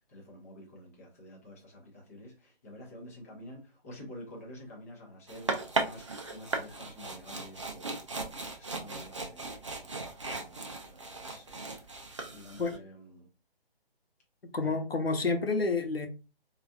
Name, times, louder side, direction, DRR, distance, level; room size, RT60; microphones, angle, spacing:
voice 1, 0.1-13.3 14.6-14.8, left 1 dB, 15° left, 0.7 m, -50 dB
sound 1, 5.3-12.8, right 3 dB, 30° right, 0.4 m, -37 dB
voice 2, 14.4-16.1, left 3 dB, 75° left, 0.9 m, -29 dB
4.0 x 2.4 x 2.3 m
figure-of-eight pair, 145°, 30 cm